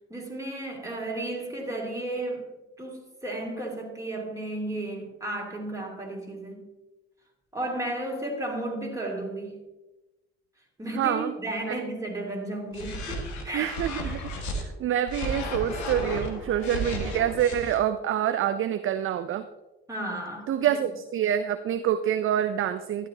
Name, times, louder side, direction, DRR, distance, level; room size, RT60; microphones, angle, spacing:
voice 1, 0.1-2.5 2.8-6.7 7.5-9.6 10.8-13.7 19.9-20.8, right 1 dB, 10° right, -1 dB, 3.0 m, -33 dB
voice 2, 10.9-11.4 11.7-11.8 13.5-19.5 20.5-23.1, right 10 dB, 40° right, 11 dB, 0.5 m, -27 dB
sound 1, 12.7-14.6 15.1-17.8, equal, 60° left, 1.8 m, -33 dB
12.0 x 10.0 x 2.8 m, 1.1 s
hypercardioid pair, 60°, 33 cm